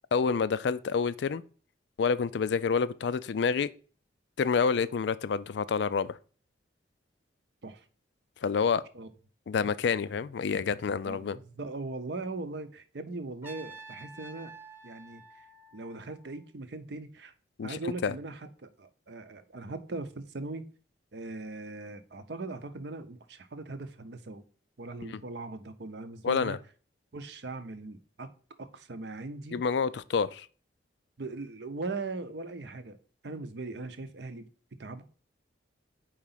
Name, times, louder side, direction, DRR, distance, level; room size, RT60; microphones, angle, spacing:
voice 1, 0.1-1.4 2.0-3.7 4.4-6.2 8.4-8.8 9.5-11.4 17.6-18.1 26.2-26.6 29.5-30.5, left 5 dB, 65° left, 0.4 m, -28 dB
voice 2, 11.1-14.5 14.8-15.5 15.7-17.3 17.6-20.7 21.1-24.4 24.8-26.6 27.1-28.3 28.6-29.6 31.2-33.0 33.2-34.5 34.8-35.1, right 3 dB, 65° right, 0.7 m, -40 dB
Trumpet, 13.4-16.4, right 3 dB, 10° right, 0.9 m, -49 dB
4.8 x 3.9 x 5.6 m
head